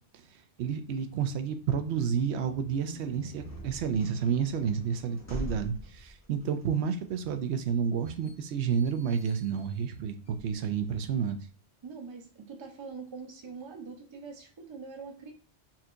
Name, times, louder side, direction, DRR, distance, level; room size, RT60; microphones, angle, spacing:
voice 1, 0.6-11.4, right 7 dB, 80° right, 8 dB, 0.9 m, -30 dB
sound 1, 2.4-11.1, right 1 dB, 20° left, 0.6 m, -45 dB
voice 2, 11.8-15.3, right 5 dB, 30° right, 3 dB, 0.6 m, -43 dB
4.2 x 2.8 x 2.5 m, 0.40 s
omnidirectional pair, 1.1 m